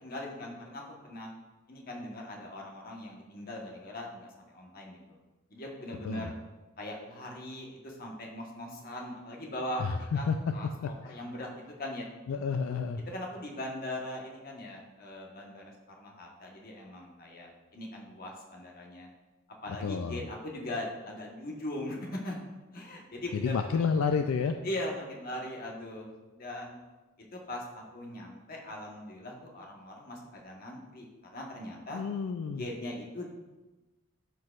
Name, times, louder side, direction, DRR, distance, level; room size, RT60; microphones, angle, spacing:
voice 1, 0.0-1.3 1.7-5.2 5.5-6.4 6.8-12.1 13.0-15.7 16.0-19.1 19.6-22.4 22.7-23.8 24.6-26.8 27.3-31.1 31.3-32.0 32.5-33.3, left 1 dB, 45° left, -1 dB, 1.2 m, -40 dB
voice 2, 12.3-13.0 19.8-20.2 23.4-24.5 31.9-32.6, left 5 dB, 75° left, 7 dB, 0.3 m, -29 dB
12.0 x 4.6 x 2.4 m, 1.1 s
head